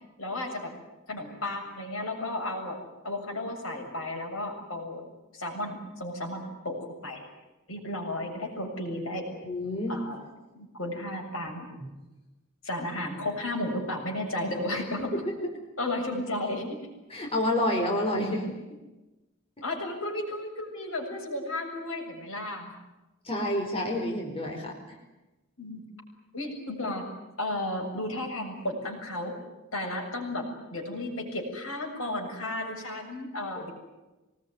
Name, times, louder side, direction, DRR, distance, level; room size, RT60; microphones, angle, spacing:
voice 1, 0.2-0.7 1.1-2.8 3.0-5.0 5.3-7.3 7.7-9.3 9.9-10.2 10.5-11.7 12.6-15.1 15.8-16.8 19.6-22.7 25.6-25.8 26.3-27.1 27.4-29.3 29.7-33.7, left 1 dB, 75° left, 2 dB, 7.3 m, -33 dB
voice 2, 9.4-10.0 11.8-11.9 14.7-14.8 15.1-15.5 17.1-18.6 23.2-24.7 32.1-32.2, left 1 dB, 30° left, 0 dB, 4.7 m, -29 dB
25.0 x 20.5 x 9.8 m, 1.0 s
head